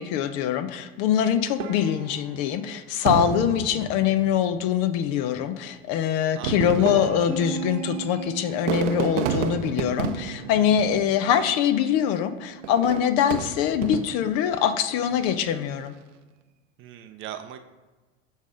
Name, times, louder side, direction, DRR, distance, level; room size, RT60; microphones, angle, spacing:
voice 1, 0.0-15.9, left 9 dB, 40° left, 11 dB, 0.5 m, -23 dB
sound 1, 1.6-4.0 6.3-6.4 6.8-9.6 9.9-10.6 10.9-11.1 11.5-11.6 12.2-12.5, right 5 dB, 50° right, 1.0 m, -41 dB
Fireworks, 3.1-4.7 5.5-5.6 6.3-11.6 12.6-14.4 15.0-15.5, right 7 dB, 70° right, 0.7 m, -31 dB
voice 2, 6.4-6.9 16.8-17.6, right 10 dB, 35° right, 8 dB, 0.6 m, -39 dB
Bass guitar, 7.3-13.5, right 6 dB, 5° left, 0.8 m, -39 dB
7.1 x 4.0 x 5.0 m, 1.2 s
figure-of-eight pair, 75°, 39 cm